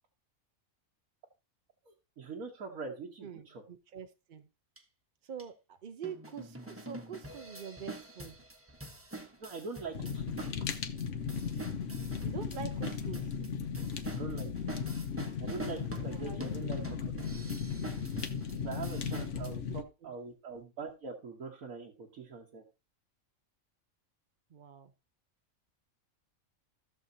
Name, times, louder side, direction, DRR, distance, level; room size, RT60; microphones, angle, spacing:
voice 1, 1.8-3.6 9.4-10.2 14.1-14.5 15.4-17.0 18.5-22.6, right 4 dB, 80° right, -2 dB, 1.6 m, -43 dB
voice 2, 3.2-4.5 5.2-8.4 12.2-13.3 16.1-16.8 19.4-20.1 24.5-24.9, right 7 dB, 50° right, 7 dB, 0.6 m, -45 dB
sound 1, 4.8-4.9 5.4-5.5 6.0-19.5, right 1 dB, 10° right, 0.8 m, -45 dB
Fire, 9.9-19.8, left 6 dB, 65° left, 1.2 m, -36 dB
16.0 x 6.4 x 2.7 m, 0.28 s
omnidirectional pair, 1.4 m